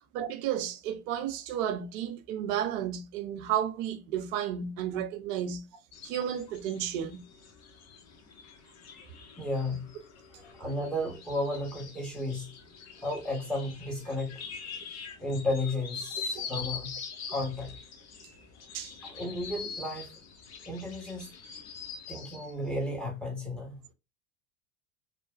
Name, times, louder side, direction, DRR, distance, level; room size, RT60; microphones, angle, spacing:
voice 1, 0.1-5.6 6.0-7.2 16.3-16.5 18.7-18.9, right 9 dB, 65° right, 0.7 m, -32 dB
sound 1, 5.9-22.5, left 6 dB, 40° left, 0.8 m, -44 dB
voice 2, 9.4-9.9 10.3-12.5 13.0-14.4 15.2-17.0 17.3-17.7 19.0-20.1 20.7-21.3 22.1-23.8, left 1 dB, ahead, 1.1 m, -33 dB
3.1 x 2.2 x 2.4 m
hypercardioid pair, 95°, 43 cm